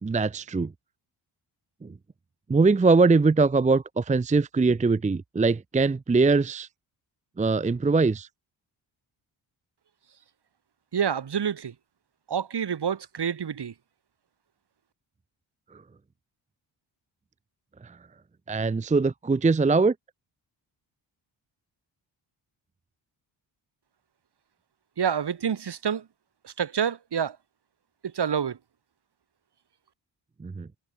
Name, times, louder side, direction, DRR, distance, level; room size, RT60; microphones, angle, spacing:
voice 1, 0.0-0.7 1.8-1.9 2.5-6.7 7.4-8.3 17.8-17.9 18.5-19.9 30.4-30.7, right 4 dB, 15° right, 0.6 m, -22 dB
voice 2, 10.9-11.7 12.3-13.7 25.0-26.0 26.4-27.4 28.1-28.6, right 7 dB, 55° right, 3.1 m, -27 dB
cardioid pair, 65°, 46 cm